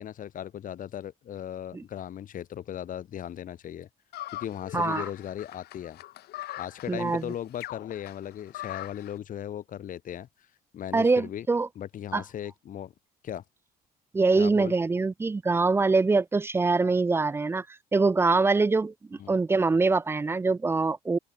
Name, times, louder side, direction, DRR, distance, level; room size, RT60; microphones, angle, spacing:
voice 1, 0.0-3.9 4.3-6.0 6.6-10.3 10.7-11.5 11.7-12.9 13.2-13.4 14.4-14.7 19.2-19.3, left 10 dB, 50° left, 1.6 m, -37 dB
sound 1, 4.1-9.1, left 15 dB, 70° left, 1.2 m, -40 dB
voice 2, 4.7-5.0 6.9-7.3 10.9-11.7 12.1-12.2 14.1-17.7 17.9-21.2, right 3 dB, 15° right, 0.4 m, -24 dB
cardioid pair, 110°, 17 cm